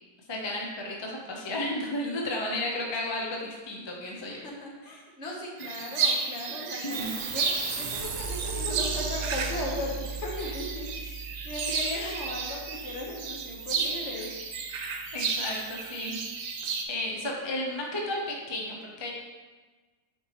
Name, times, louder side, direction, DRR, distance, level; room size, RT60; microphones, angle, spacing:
voice 1, 0.3-4.4 5.8-5.9 6.8-7.1 10.4-10.6 11.9-12.2 15.1-16.2 16.6-19.1, left 1 dB, 25° left, -1 dB, 0.7 m, -33 dB
voice 2, 4.3-11.2 11.4-14.3, left 1 dB, 55° left, -2 dB, 1.4 m, -37 dB
sound 1, 5.6-16.8, right 5 dB, 90° right, 1.2 m, -33 dB
sound 2, 6.9-13.8, right 4 dB, 70° right, 0.4 m, -37 dB
9.0 x 4.5 x 3.0 m, 1.3 s
omnidirectional pair, 1.5 m